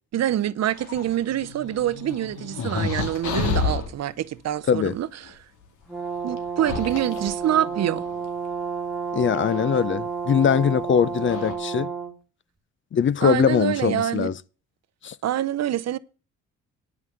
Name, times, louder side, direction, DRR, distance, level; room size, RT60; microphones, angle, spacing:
voice 1, 0.1-5.3 6.2-8.0 13.2-14.3 15.2-16.0, right 11 dB, 60° right, 0.7 m, -26 dB
sound 1, 0.7-3.9 5.2-5.3 6.4-8.2 9.3-9.8 10.8-10.9 11.2-11.5, left 5 dB, 90° left, 2.3 m, -30 dB
Brass instrument, 5.9-12.2, right 6 dB, ahead, 2.3 m, -31 dB
voice 2, 9.1-11.9 12.9-14.4 15.0-15.2, left 8 dB, 40° left, 0.6 m, -21 dB
9.7 x 5.7 x 7.7 m
cardioid pair, 90°, 30 cm